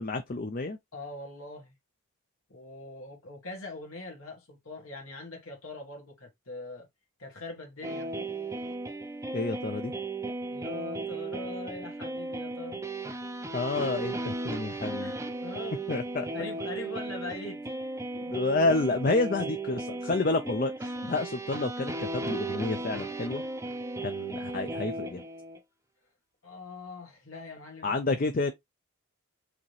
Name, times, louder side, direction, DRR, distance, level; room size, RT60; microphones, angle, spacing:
voice 1, 0.0-0.8 9.3-9.9 13.5-15.1 15.9-16.3 18.1-23.4 24.0-25.2 27.8-28.5, left 3 dB, 40° left, 0.5 m, -29 dB
voice 2, 0.9-1.7 2.5-6.9 7.2-8.1 10.5-12.8 15.0-15.9 16.3-17.8 26.4-27.9, left 2 dB, 80° left, 1.6 m, -42 dB
sound 1, 7.8-25.6, right 2 dB, 15° right, 0.5 m, -36 dB
4.9 x 2.9 x 3.2 m
head